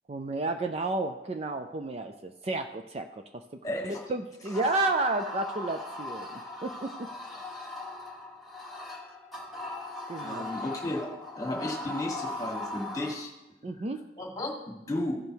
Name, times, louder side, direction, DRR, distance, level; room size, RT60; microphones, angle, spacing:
voice 1, 0.1-3.4 3.8-7.1 10.1-10.5 13.6-14.0, right 2 dB, 35° right, 7 dB, 0.4 m, -32 dB
voice 2, 3.6-4.0 10.2-11.1 11.4-13.3 13.8-13.9 14.2-15.2, left 1 dB, 20° left, 1 dB, 1.5 m, -34 dB
sound 1, 4.5-13.2, left 2 dB, ahead, 1.3 m, -39 dB
15.0 x 5.2 x 4.5 m, 1.0 s
head